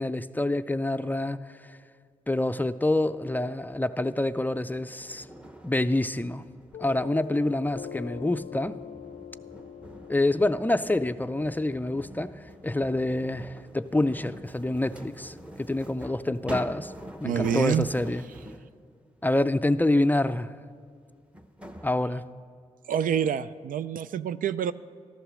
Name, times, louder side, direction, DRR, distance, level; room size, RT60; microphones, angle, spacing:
voice 1, 0.0-1.8 2.3-5.3 5.6-6.4 6.8-8.8 10.1-16.9 17.2-18.2 19.2-20.5 21.8-22.2, left 2 dB, 10° left, 0.4 m, -27 dB
sound 1, 3.6-18.8 20.5-20.6 21.3-21.9, equal, 10° right, 0.9 m, -46 dB
Piano, 6.7-13.8, left 8 dB, 65° left, 0.5 m, -45 dB
sound 2, 8.7-16.4, left 1 dB, 90° right, 4.1 m, -60 dB
voice 2, 17.2-17.9 22.9-24.7, right 8 dB, 70° right, 0.4 m, -27 dB
13.5 x 11.0 x 6.2 m
cardioid pair, 55°, 14 cm